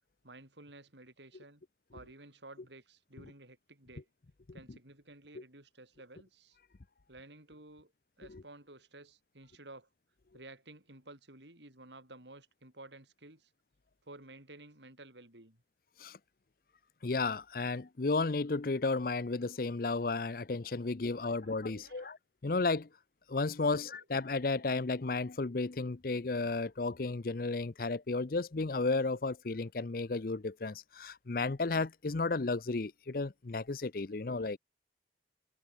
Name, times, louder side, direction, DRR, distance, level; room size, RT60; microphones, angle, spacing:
voice 1, 0.2-1.6 1.9-4.1 4.5-6.6 7.1-9.9 10.3-13.5 14.0-15.6 21.2-22.1 23.6-24.1, right 2 dB, 80° right, 6.6 m, -54 dB
voice 2, 17.0-22.2 22.4-22.9 23.3-34.6, left 3 dB, 50° left, 0.7 m, -33 dB
head